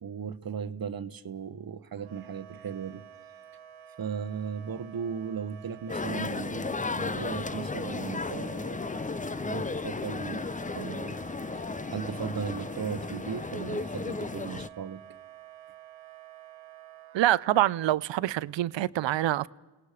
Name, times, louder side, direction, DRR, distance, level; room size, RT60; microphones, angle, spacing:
voice 1, 0.0-3.0 4.0-10.5 10.7-11.2 11.6-11.7 11.9-15.0, right 7 dB, 50° right, 1.1 m, -37 dB
Wind instrument woodwind instrument, 2.0-17.3, right 10 dB, 90° right, 1.1 m, -50 dB
sound 1, 5.9-14.7, left 3 dB, 15° left, 0.6 m, -34 dB
voice 2, 17.1-19.5, right 14 dB, 70° right, 0.6 m, -25 dB
29.0 x 18.0 x 5.0 m
supercardioid pair, 45°, 46 cm